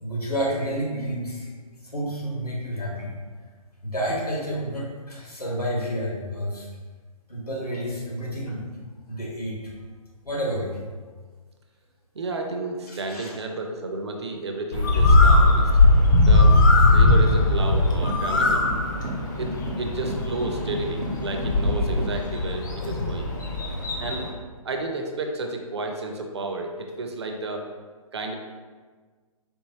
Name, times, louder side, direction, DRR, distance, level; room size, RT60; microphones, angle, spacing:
voice 1, 0.0-3.1 3.8-6.7 7.3-8.6 9.1-9.6 10.2-10.8 12.9-13.3, equal, 90° left, -4 dB, 1.4 m, -30 dB
voice 2, 12.1-15.7 16.2-18.6 19.3-23.3 24.0-24.3 24.6-27.7 28.1-28.3, right 2 dB, 45° right, 3 dB, 0.5 m, -32 dB
Bird, 14.7-24.3, left 2 dB, 30° left, 0.4 m, -19 dB
sound 1, 18.0-22.2, equal, 85° right, 0.8 m, -34 dB
4.4 x 2.7 x 2.8 m, 1.4 s
figure-of-eight pair, 135°, 19 cm